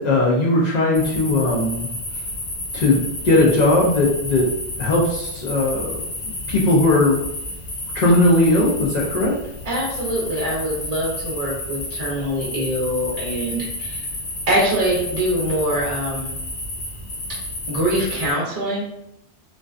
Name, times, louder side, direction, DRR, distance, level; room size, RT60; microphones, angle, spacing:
voice 1, 0.0-1.9 2.7-4.5 4.8-6.0 6.2-7.2 7.9-9.3, left 2 dB, 55° left, -5 dB, 0.5 m, -18 dB
sound 1, 0.9-18.3, left 1 dB, 80° left, 1.0 m, -31 dB
voice 2, 9.7-14.1 14.5-16.3 17.7-18.9, equal, 45° right, -5 dB, 0.6 m, -23 dB
2.4 x 2.2 x 2.3 m, 0.84 s
omnidirectional pair, 1.1 m